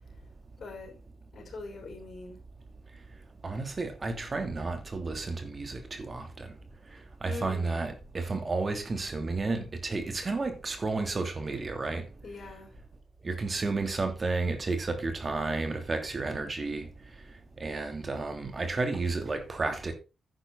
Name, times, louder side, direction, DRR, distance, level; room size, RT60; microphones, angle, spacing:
voice 1, 0.6-0.9 1.3-2.4 7.3-7.8 12.2-12.7, left 3 dB, 60° left, 5.3 m, -42 dB
voice 2, 3.4-6.5 7.2-12.0 13.2-16.9 17.6-19.9, right 3 dB, 40° right, 3.0 m, -32 dB
10.5 x 9.8 x 4.1 m
cardioid pair, 60°, 0 cm